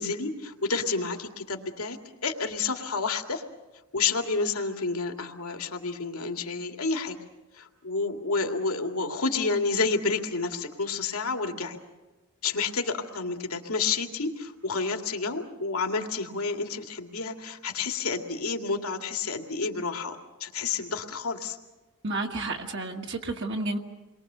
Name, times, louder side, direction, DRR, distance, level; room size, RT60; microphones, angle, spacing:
voice 1, 0.0-2.0 2.2-3.4 3.9-7.2 7.6-11.8 12.4-21.6, left 4 dB, 85° left, 3 dB, 2.4 m, -30 dB
voice 2, 22.0-23.8, right 2 dB, 55° right, 1 dB, 1.6 m, -31 dB
29.0 x 22.5 x 6.9 m, 1.1 s
head